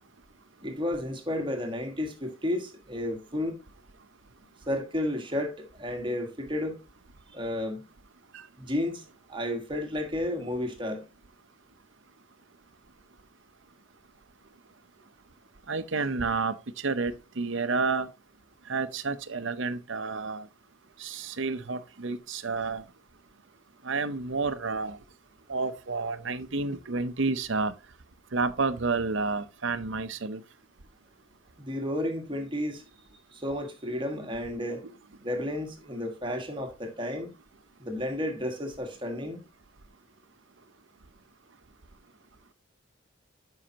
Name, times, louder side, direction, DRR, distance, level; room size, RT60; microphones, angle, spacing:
voice 1, 0.6-3.6 4.7-6.8 7.3-7.9 8.6-9.0 9.3-11.0 31.6-32.8 33.3-34.8 35.2-37.3 37.8-39.4, left 1 dB, 25° right, 1.6 m, -32 dB
voice 2, 15.7-18.1 18.7-20.5 21.0-22.8 23.8-25.0 25.5-27.7 28.3-30.4, right 4 dB, 65° right, 0.8 m, -30 dB
12.5 x 5.7 x 2.9 m
head